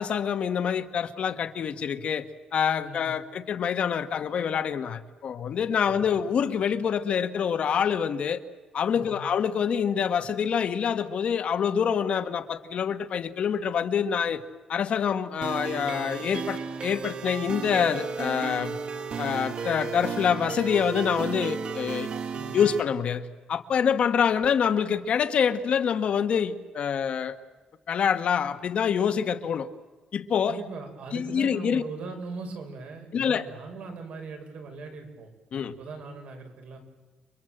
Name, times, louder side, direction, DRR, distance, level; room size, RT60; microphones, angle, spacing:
voice 1, 0.0-2.3 2.5-8.4 8.7-14.4 14.7-18.8 19.2-22.1 22.5-27.4 27.9-29.7 30.1-30.6 31.1-31.8 33.1-33.4 35.5-35.7, left 7 dB, 50° left, 9 dB, 1.3 m, -26 dB
voice 2, 2.8-3.1 5.8-6.2 8.9-9.3 22.3-22.6 30.5-35.3 35.6-36.8, right 3 dB, 70° right, 4 dB, 5.8 m, -40 dB
sound 1, 15.4-22.8, right 6 dB, 45° right, 1.4 m, -34 dB
30.0 x 23.0 x 7.9 m, 1.3 s
wide cardioid pair, 165°, 2 cm